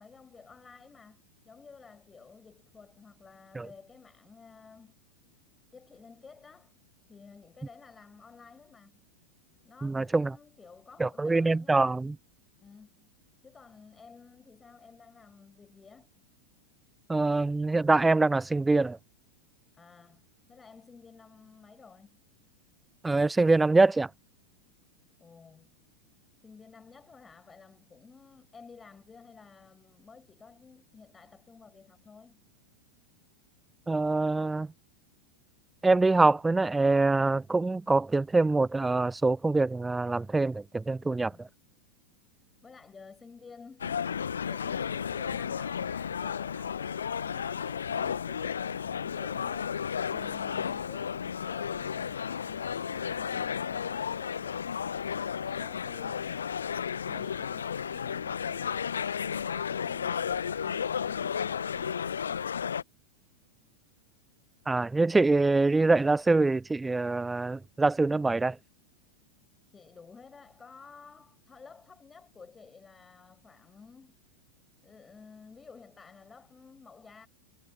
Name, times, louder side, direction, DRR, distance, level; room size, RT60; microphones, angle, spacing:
voice 1, 0.0-5.0 5.7-6.8 7.1-9.0 9.6-12.0 12.6-13.1 13.4-16.1 19.7-22.2 25.2-25.7 26.4-32.4 41.0-41.5 42.6-55.1 55.4-58.9 69.7-74.2 74.8-77.3, left 5 dB, 15° left, 7.4 m, -53 dB
voice 2, 9.8-10.3 11.0-12.2 17.1-19.0 23.0-24.1 33.9-34.7 35.8-41.5 64.7-68.6, right 3 dB, 10° right, 0.7 m, -24 dB
sound 1, 43.8-62.8, left 7 dB, 70° left, 1.0 m, -33 dB
figure-of-eight pair, 90°, 0 cm